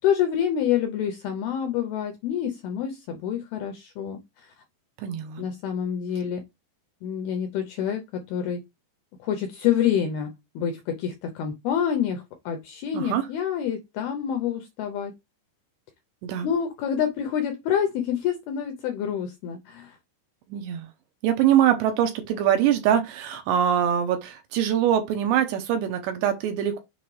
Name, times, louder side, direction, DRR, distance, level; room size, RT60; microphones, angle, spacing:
voice 1, 0.0-4.5 5.4-6.4 7.0-8.6 9.2-15.1 16.4-20.0, left 9 dB, 85° left, 2.2 m, -27 dB
voice 2, 5.0-5.4 12.9-13.3 16.2-16.5 20.5-20.9 21.2-26.8, right 10 dB, 75° right, 2.8 m, -23 dB
7.0 x 4.4 x 3.2 m
omnidirectional pair, 5.3 m